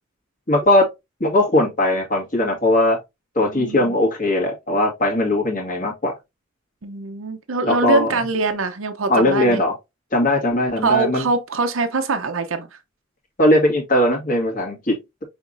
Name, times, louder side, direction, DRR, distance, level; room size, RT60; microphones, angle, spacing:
voice 1, 0.5-0.9 1.2-3.0 3.4-6.2 7.6-8.2 9.1-9.7 10.1-11.2 13.4-15.0, left 1 dB, 40° left, 1.8 m, -19 dB
voice 2, 3.4-4.0 6.8-9.6 10.8-12.7, right 3 dB, 75° right, 0.7 m, -23 dB
5.7 x 3.5 x 2.5 m
head